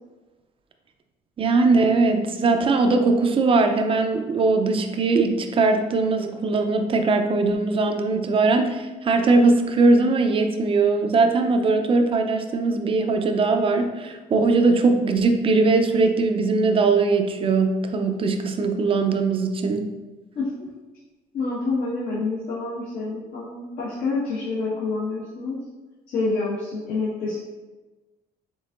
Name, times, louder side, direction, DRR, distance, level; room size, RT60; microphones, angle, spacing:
voice 1, 1.4-19.9, right 3 dB, 30° right, 5 dB, 0.5 m, -20 dB
voice 2, 20.3-20.7 21.3-25.6 26.1-27.4, left 3 dB, 65° left, -8 dB, 1.4 m, -27 dB
5.3 x 3.6 x 2.5 m, 1.2 s
cardioid pair, 110°, 17 cm